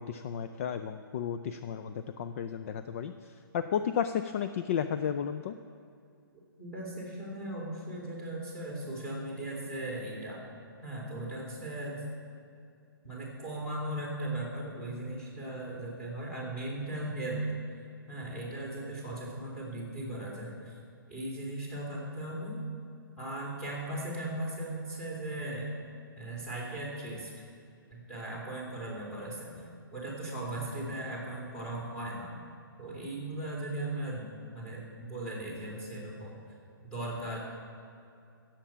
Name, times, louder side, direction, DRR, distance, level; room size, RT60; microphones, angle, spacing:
voice 1, 0.0-5.6, left 8 dB, 35° left, 10 dB, 0.4 m, -33 dB
voice 2, 6.6-10.4 10.8-12.0 13.0-17.4 18.1-20.7 21.1-22.6 23.2-25.7 26.2-27.3 27.9-32.3 32.8-36.3 36.9-37.4, right 1 dB, 5° left, -3 dB, 2.8 m, -38 dB
16.5 x 7.4 x 5.8 m, 2.5 s
hypercardioid pair, 155°, 12 cm